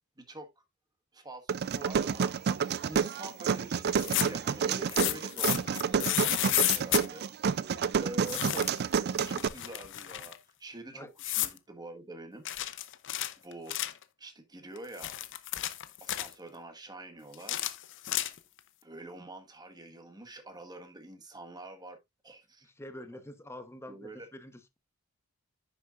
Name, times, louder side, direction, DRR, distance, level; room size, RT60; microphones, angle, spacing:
voice 1, 0.2-0.5 1.1-2.3 2.9-7.2 8.0-8.7 9.3-12.5 13.4-13.8 14.2-15.2 16.0-17.6 18.8-22.0 22.2-22.7 23.9-24.3, right 2 dB, 20° right, 1.5 m, -46 dB
sound 1, 1.5-9.5, right 6 dB, 45° right, 0.4 m, -29 dB
sound 2, 3.9-4.5 4.9-7.1 8.3-8.9 9.2-10.4 11.2-11.6 12.5-14.0 14.8-16.3 17.3-18.6, left 14 dB, 55° left, 0.7 m, -32 dB
voice 2, 22.6-24.8, left 1 dB, 10° left, 0.9 m, -46 dB
10.0 x 6.7 x 2.4 m
head